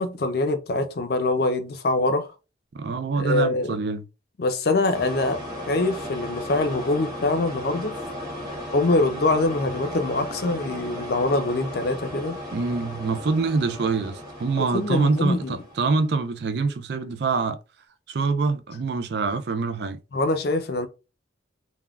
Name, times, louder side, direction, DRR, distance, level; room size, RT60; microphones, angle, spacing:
voice 1, 0.0-2.3 3.2-3.7 4.4-5.4 5.7-8.0 8.7-12.4 14.6-15.5 20.1-20.9, left 2 dB, 55° left, 0.5 m, -24 dB
voice 2, 2.7-4.0 12.5-17.6 18.1-20.0, right 4 dB, 55° right, 0.4 m, -25 dB
sound 1, 4.9-16.1, left 1 dB, 20° right, 0.9 m, -36 dB
3.5 x 2.1 x 2.3 m
head